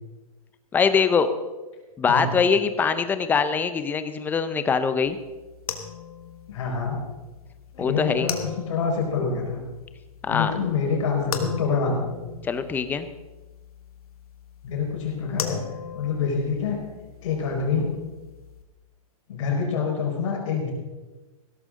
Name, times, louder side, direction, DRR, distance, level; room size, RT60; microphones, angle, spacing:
voice 1, 0.7-1.3 2.0-5.2 7.8-8.3 10.2-10.5 12.5-13.1, left 5 dB, 10° left, 11 dB, 0.6 m, -22 dB
sound 1, 5.1-18.6, left 8 dB, 75° left, 1.7 m, -39 dB
voice 2, 6.5-7.0 7.7-9.6 10.3-12.1 14.6-15.6 15.9-16.8 17.2-17.9 19.3-20.7, left 5 dB, 55° left, 0 dB, 4.7 m, -26 dB
16.5 x 13.5 x 3.8 m, 1.2 s
hypercardioid pair, 145°, 19 cm